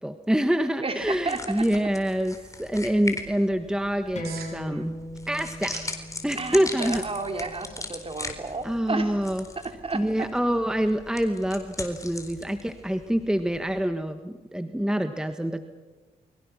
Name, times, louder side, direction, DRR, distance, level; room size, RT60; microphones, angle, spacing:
voice 1, 0.0-4.9 5.3-5.8 6.2-7.0 8.6-9.4 9.9-15.6, equal, 5° right, 8 dB, 1.4 m, -26 dB
voice 2, 0.8-1.9 4.7-4.8 6.4-9.2 9.6-10.3, right 3 dB, 35° right, 5 dB, 3.6 m, -32 dB
sound 1, 1.0-13.9, left 2 dB, 20° left, 4.1 m, -40 dB
sound 2, 1.3-11.9, right 7 dB, 85° right, 4.2 m, -52 dB
sound 3, 4.2-9.3, equal, 45° left, 7.9 m, -40 dB
29.0 x 22.5 x 6.2 m, 1.3 s
cardioid pair, 65°, 16 cm